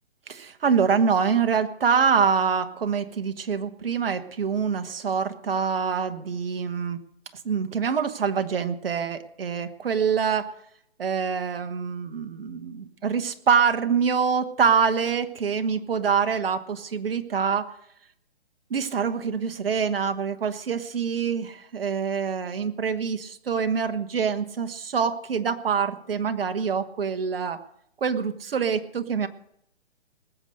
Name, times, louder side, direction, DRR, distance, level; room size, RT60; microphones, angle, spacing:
voice 1, 0.3-7.0 7.4-10.5 11.0-17.7 18.7-27.6 28.0-29.3, right 6 dB, 60° right, 10 dB, 1.4 m, -25 dB
20.0 x 7.9 x 6.6 m, 0.73 s
figure-of-eight pair, 140°, 32 cm